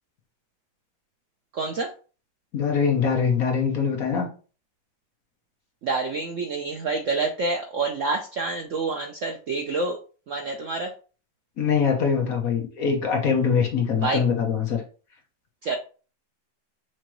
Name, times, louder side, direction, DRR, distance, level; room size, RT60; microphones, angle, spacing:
voice 1, 1.5-1.9 5.8-10.0 10.3-10.9 14.0-14.2 15.6-15.8, right 3 dB, 80° right, 3 dB, 0.7 m, -27 dB
voice 2, 2.5-4.3 11.6-14.8, left 6 dB, 55° left, 2 dB, 1.3 m, -23 dB
6.1 x 2.9 x 3.0 m, 0.36 s
omnidirectional pair, 2.1 m